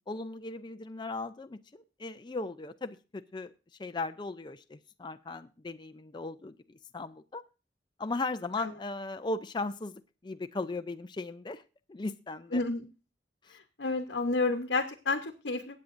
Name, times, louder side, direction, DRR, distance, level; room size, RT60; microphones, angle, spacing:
voice 1, 0.1-3.5 3.8-7.4 8.0-11.6 11.9-12.6 13.5-13.6, left 3 dB, 25° left, 9 dB, 0.5 m, -37 dB
voice 2, 13.8-15.8, left 3 dB, 85° left, 5 dB, 1.0 m, -30 dB
21.5 x 8.5 x 2.6 m, 0.31 s
head